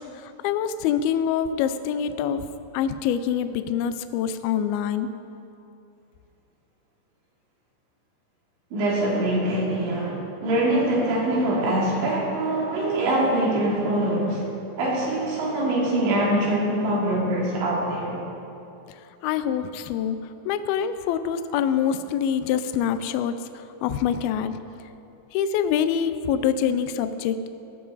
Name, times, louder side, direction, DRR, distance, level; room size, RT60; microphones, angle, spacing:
voice 1, 0.4-2.4 2.7-5.1 19.2-20.2 20.5-23.3 23.8-24.6 25.3-27.5, left 8 dB, 85° left, 10 dB, 2.1 m, -25 dB
voice 2, 8.7-14.4 14.8-18.2, right 1 dB, 85° right, -4 dB, 5.2 m, -24 dB
17.0 x 14.5 x 4.1 m, 2.8 s
omnidirectional pair, 5.1 m